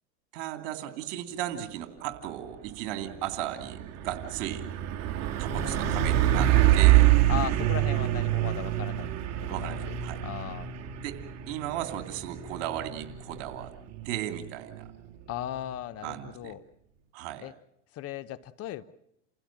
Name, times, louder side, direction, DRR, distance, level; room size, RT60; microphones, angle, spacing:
voice 1, 0.3-4.7 5.4-7.2 9.5-10.2 11.0-11.2 11.5-13.7 14.0-14.9 16.0-16.6 17.1-17.5, right 12 dB, 60° right, 7 dB, 3.0 m, -36 dB
Truck, 2.5-2.8 3.1-15.7, right 13 dB, 45° right, 2.1 m, -26 dB
voice 2, 5.5-6.0 7.3-9.1 9.5-9.7 10.2-10.7 15.3-16.6 17.4-17.5 17.9-18.8, left 12 dB, 40° left, 15 dB, 1.0 m, -37 dB
29.5 x 16.0 x 7.5 m, 0.76 s
hypercardioid pair, 110°, 37 cm